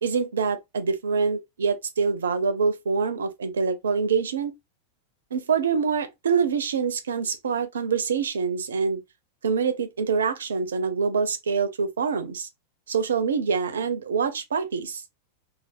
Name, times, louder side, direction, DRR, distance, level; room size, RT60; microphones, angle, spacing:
voice 1, 0.0-4.5 5.3-9.0 9.4-12.5 12.9-15.0, right 5 dB, 65° right, 0.6 m, -25 dB
3.3 x 2.5 x 2.4 m
figure-of-eight pair, 90°, 0 cm